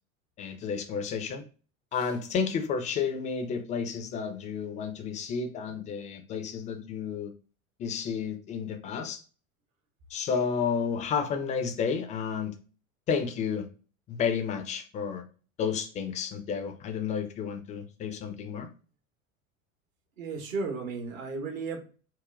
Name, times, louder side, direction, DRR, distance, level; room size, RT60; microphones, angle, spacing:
voice 1, 0.4-1.4 1.9-7.3 7.8-9.2 10.1-12.6 13.1-13.7 14.1-15.2 15.6-18.7, left 6 dB, 20° left, 0.4 m, -31 dB
voice 2, 20.2-21.8, right 4 dB, 65° right, 1.1 m, -34 dB
5.8 x 2.1 x 2.4 m
figure-of-eight pair, 75°, 43 cm